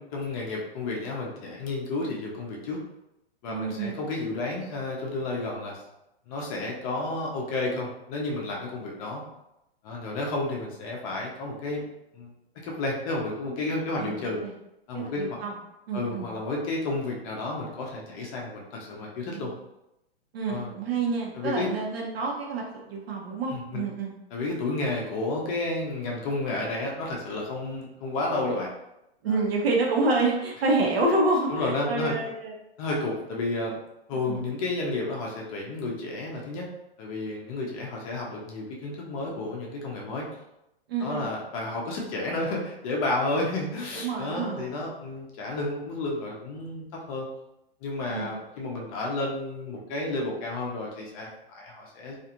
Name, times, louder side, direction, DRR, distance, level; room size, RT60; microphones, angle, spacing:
voice 1, 0.0-2.8 3.4-5.8 6.3-9.2 9.8-11.8 12.1-12.3 12.6-14.4 14.9-15.4 15.9-19.5 20.5-20.7 21.3-21.7 23.5-23.9 24.3-28.7 29.3-29.4 31.5-32.2 32.8-33.8 34.1-36.7 37.0-40.3 41.0-47.3 47.8-52.2, left 2 dB, 35° left, -1 dB, 0.6 m, -31 dB
voice 2, 3.5-4.0 14.0-14.5 14.9-15.5 15.9-16.3 19.3-19.5 20.3-24.1 29.2-32.5 34.2-34.4 40.9-41.2 43.9-44.7 48.1-48.3, right 3 dB, 70° right, -1 dB, 0.9 m, -28 dB
2.5 x 2.4 x 2.8 m, 0.87 s
hypercardioid pair, 140°, 32 cm